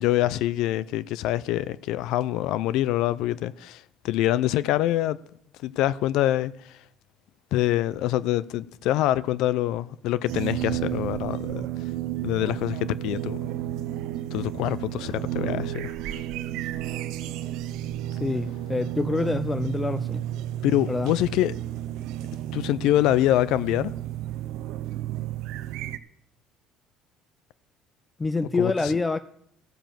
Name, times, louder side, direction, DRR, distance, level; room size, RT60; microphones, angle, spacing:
voice 1, 0.0-5.2 5.6-6.5 7.5-11.7 12.2-13.4 14.3-15.9 20.6-21.6 22.5-23.9 28.6-28.9, left 14 dB, 75° left, 0.4 m, -25 dB
sound 1, 10.3-26.0, right 12 dB, 80° right, 0.7 m, -32 dB
voice 2, 18.2-20.2 20.9-21.1 28.2-29.2, left 3 dB, 20° left, 0.4 m, -26 dB
14.5 x 6.9 x 7.6 m
cardioid pair, 105°, 0 cm